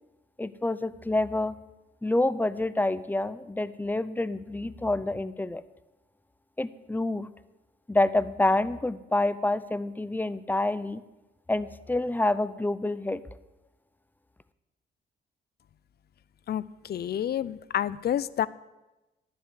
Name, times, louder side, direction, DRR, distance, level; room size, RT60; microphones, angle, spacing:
voice 1, 0.4-1.6 2.0-5.6 6.6-7.3 7.9-11.0 11.5-13.2, left 2 dB, 10° left, 16 dB, 0.6 m, -27 dB
voice 2, 16.5-18.5, left 10 dB, 55° left, 19 dB, 0.5 m, -29 dB
11.5 x 7.8 x 8.2 m, 1.0 s
cardioid pair, 90°, 20 cm